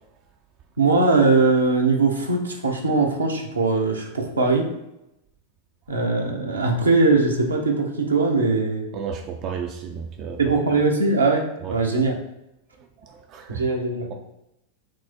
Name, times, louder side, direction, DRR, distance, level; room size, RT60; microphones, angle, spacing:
voice 1, 0.8-4.7 5.9-8.9 10.4-12.1 13.5-14.1, right 3 dB, 75° right, 1 dB, 0.7 m, -21 dB
voice 2, 8.9-10.4 11.6-11.8 12.8-13.6, right 7 dB, 35° right, 4 dB, 0.3 m, -33 dB
4.5 x 2.0 x 4.3 m, 0.87 s
figure-of-eight pair, 90°, 0 cm